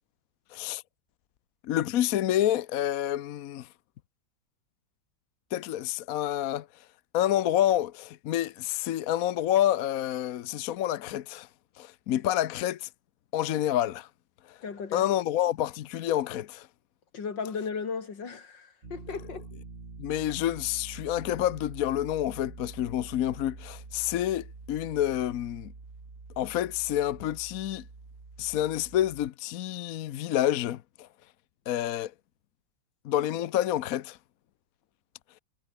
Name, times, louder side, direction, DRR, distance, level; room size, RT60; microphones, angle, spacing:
voice 1, 0.5-0.8 1.6-3.7 5.5-6.7 7.1-11.5 11.8-12.9 13.3-14.1 14.9-16.7 20.0-25.7 26.4-27.8 28.4-31.1 31.7-32.1 33.0-34.2, left 12 dB, 60° left, 1.0 m, -28 dB
voice 2, 14.6-15.1 17.1-19.4, left 5 dB, 80° left, 3.2 m, -36 dB
sound 1, 18.8-29.3, right 3 dB, 40° right, 3.0 m, -46 dB
omnidirectional pair, 1.9 m